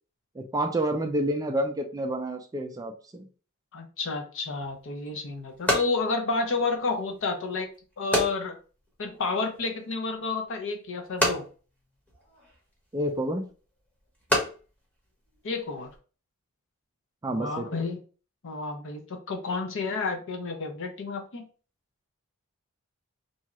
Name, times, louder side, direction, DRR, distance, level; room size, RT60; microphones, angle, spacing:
voice 1, 0.3-3.2 12.9-13.4 17.2-17.7, right 1 dB, 15° right, 4 dB, 0.3 m, -29 dB
voice 2, 3.7-7.7 8.0-8.6 9.0-11.4 15.4-15.9 17.3-18.0 18.4-21.5, left 3 dB, 60° left, 5 dB, 0.6 m, -30 dB
sound 1, 4.6-16.0, left 1 dB, 5° left, 0.9 m, -33 dB
2.7 x 2.4 x 2.9 m, 0.37 s
head